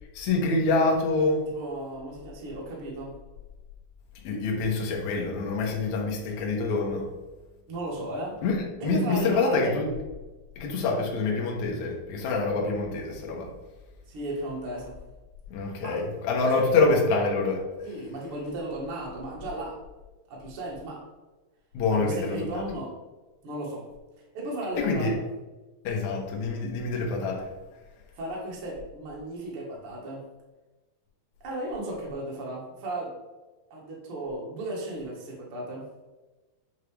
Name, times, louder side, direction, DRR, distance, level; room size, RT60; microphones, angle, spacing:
voice 1, 0.2-1.5 4.2-7.1 8.4-9.9 10.6-13.5 15.5-17.6 21.7-22.6 24.8-25.1 25.8-27.5, left 3 dB, 70° left, 0 dB, 1.8 m, -26 dB
voice 2, 1.5-3.1 7.7-8.4 8.8-9.7 14.1-15.0 15.8-16.0 16.4-16.9 17.8-19.8 20.3-21.0 21.9-23.0 23.4-23.8 24.3-25.2 28.2-30.2 31.4-33.1 33.7-35.8, right 1 dB, 60° right, -3 dB, 1.4 m, -35 dB
8.1 x 3.6 x 3.3 m, 1.2 s
omnidirectional pair, 4.6 m